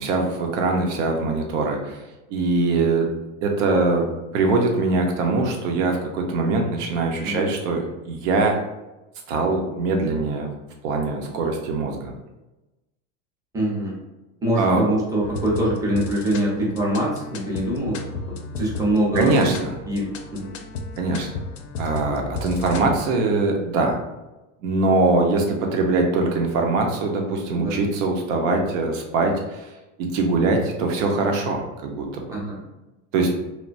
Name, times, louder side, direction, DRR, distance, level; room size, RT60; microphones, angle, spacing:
voice 1, 0.0-2.0 2.3-3.1 3.4-8.6 9.3-10.5 10.8-12.1 14.6-14.8 19.1-19.7 21.0-21.3 21.8-24.0 24.6-29.7 30.0-32.3 33.1-33.3, right 3 dB, 75° right, 2 dB, 0.8 m, -22 dB
voice 2, 13.5-13.9 14.4-18.0 18.6-19.5 19.9-20.5 27.5-27.8 32.3-32.6, right 1 dB, 10° right, -5 dB, 0.6 m, -24 dB
sound 1, 15.2-23.0, left 3 dB, 75° left, 0.5 m, -34 dB
3.1 x 2.1 x 2.5 m, 1.0 s
supercardioid pair, 150°, 38 cm